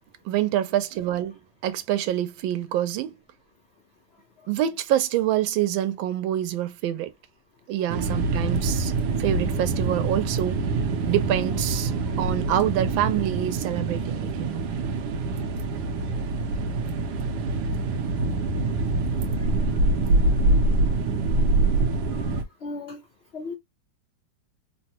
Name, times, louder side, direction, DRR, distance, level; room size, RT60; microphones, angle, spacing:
voice 1, 0.2-3.2 4.5-7.1 7.7-8.9 9.2-10.7 11.1-11.9 12.2-14.7, right 12 dB, 90° right, 1.4 m, -26 dB
sound 1, 7.9-22.4, right 3 dB, 70° right, 1.1 m, -25 dB
voice 2, 22.3-23.0 23.3-23.5, left 3 dB, 55° left, 0.7 m, -36 dB
3.6 x 2.1 x 2.7 m
omnidirectional pair, 2.1 m